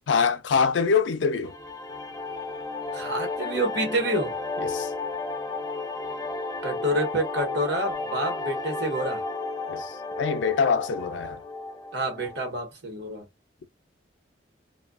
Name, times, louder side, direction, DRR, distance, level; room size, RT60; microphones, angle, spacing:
voice 1, 0.1-1.5 4.6-4.9 9.7-11.4, left 5 dB, 80° left, 0.4 m, -24 dB
sound 1, 1.4-12.5, left 3 dB, 20° left, 0.4 m, -33 dB
voice 2, 2.9-4.3 6.6-9.2 11.9-13.2, right 1 dB, 65° right, 1.0 m, -28 dB
2.6 x 2.3 x 2.4 m
head